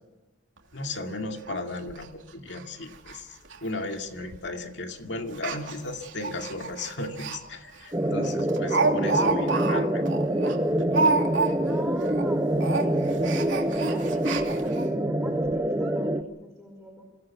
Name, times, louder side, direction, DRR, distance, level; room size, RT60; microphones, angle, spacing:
Speech, 0.6-0.7 1.0-1.1 1.5-1.6 1.9-2.0 2.5-2.6 2.9-3.2 3.4-3.6 4.3-4.6 5.3-7.4 7.8-7.9 8.2-11.8 12.1-12.3 12.6-14.9 15.4-15.5 15.8-15.9, right 3 dB, 75° right, 2.9 m, -29 dB
voice 1, 0.7-10.1, left 2 dB, 60° left, 4 dB, 2.3 m, -35 dB
sound 1, 7.9-16.2, right 1 dB, 15° right, 0.9 m, -26 dB
voice 2, 11.6-13.2 13.8-17.0, equal, ahead, -3 dB, 4.9 m, -45 dB
26.0 x 17.0 x 7.2 m, 1.1 s
head